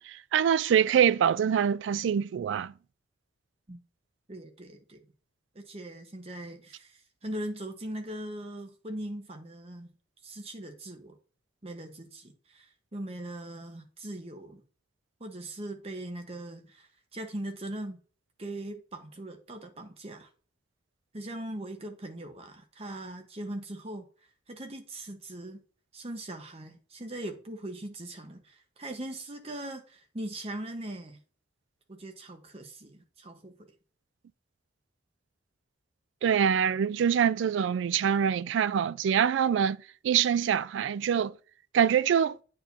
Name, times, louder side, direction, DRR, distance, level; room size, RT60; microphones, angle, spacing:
voice 1, 0.0-2.7 36.2-39.8 40.0-41.3 41.7-42.4, right 8 dB, 75° right, 0.3 m, -25 dB
voice 2, 4.3-5.0 5.5-6.9 7.2-9.9 10.2-11.2 11.6-12.6 12.9-14.6 15.2-18.0 18.4-20.3 21.1-24.0 24.5-25.6 25.9-31.2 31.9-33.5, right 1 dB, 35° right, 1.0 m, -40 dB
8.8 x 4.5 x 2.7 m
head